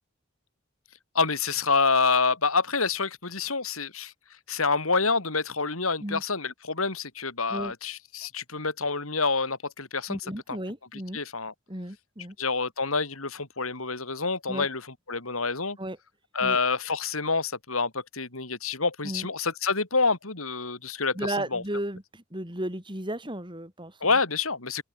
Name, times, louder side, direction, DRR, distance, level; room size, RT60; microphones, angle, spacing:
voice 1, 1.1-4.1 4.5-10.2 10.5-10.6 10.9-11.5 12.4-14.8 15.1-15.8 16.3-21.2 21.5-21.6 24.0-24.8, left 4 dB, 90° left, 4.3 m, -27 dB
voice 2, 10.1-11.2 11.7-12.4 14.5-14.7 15.8-16.0 16.4-16.6 19.0-19.3 21.1-24.1, right 1 dB, 25° right, 6.5 m, -34 dB
open air
head